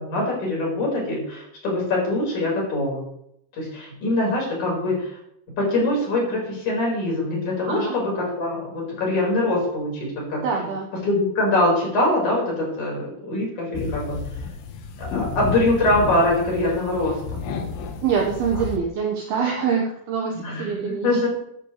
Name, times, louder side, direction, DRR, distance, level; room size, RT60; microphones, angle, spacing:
voice 1, 0.0-3.1 3.5-5.2 5.6-10.4 11.0-14.2 15.0-17.4 20.4-21.3, left 1 dB, 40° left, -3 dB, 5.9 m, -23 dB
voice 2, 7.6-8.0 10.4-10.9 18.0-21.3, right 6 dB, 70° right, 0 dB, 2.5 m, -25 dB
sound 1, 13.7-18.8, left 5 dB, 75° left, 2.1 m, -31 dB
14.5 x 12.0 x 3.3 m, 0.73 s
omnidirectional pair, 5.9 m